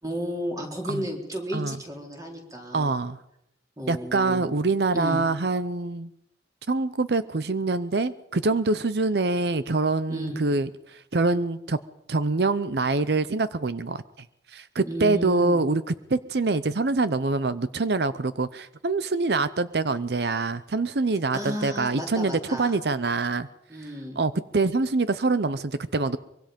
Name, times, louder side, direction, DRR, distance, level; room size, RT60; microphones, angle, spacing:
voice 1, 0.0-3.0 3.8-4.5 4.9-5.2 10.1-10.4 14.8-15.6 21.3-22.8 23.7-24.2, equal, 20° right, 1 dB, 3.9 m, -33 dB
voice 2, 2.7-3.2 3.9-6.1 6.7-11.8 12.1-14.0 14.5-15.8 16.1-23.5 24.2-26.2, right 3 dB, 65° right, 14 dB, 0.7 m, -25 dB
24.0 x 23.0 x 5.2 m, 0.79 s
head